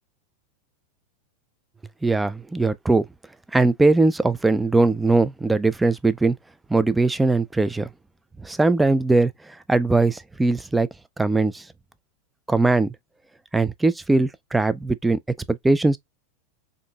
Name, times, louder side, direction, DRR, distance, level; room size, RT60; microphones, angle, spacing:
voice 1, 2.0-3.1 3.5-6.4 6.7-7.9 8.4-9.3 9.7-10.9 11.2-11.6 12.5-12.9 13.5-15.2 15.5-16.0, right 3 dB, 10° right, 0.3 m, -20 dB
3.7 x 2.6 x 2.2 m
hypercardioid pair, 110°, 0 cm